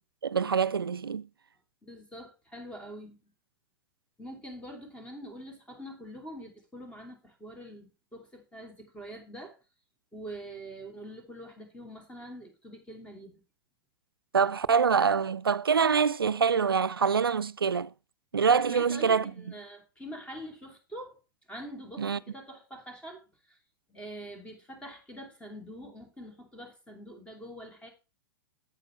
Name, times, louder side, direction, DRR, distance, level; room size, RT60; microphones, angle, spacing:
voice 1, 0.2-1.3 14.3-17.9 18.3-19.3 22.0-22.2, right 6 dB, 85° right, 0.5 m, -25 dB
voice 2, 1.8-3.2 4.2-9.6 10.1-13.4 18.7-21.2 21.5-23.6 23.9-27.9, equal, 10° left, 2.9 m, -45 dB
9.7 x 8.3 x 3.3 m
figure-of-eight pair, 100°, 12 cm